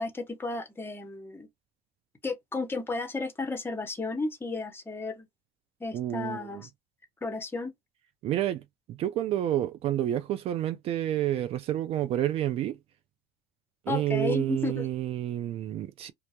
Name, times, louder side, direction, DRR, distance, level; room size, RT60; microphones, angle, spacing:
voice 1, 0.0-1.5 2.2-5.3 5.8-6.7 7.2-7.7 13.9-14.9, left 3 dB, 15° left, 0.8 m, -33 dB
voice 2, 5.9-6.6 8.2-8.6 8.9-12.7 13.9-16.1, right 12 dB, 50° right, 0.4 m, -29 dB
2.1 x 2.0 x 2.8 m
supercardioid pair, 90°, 13 cm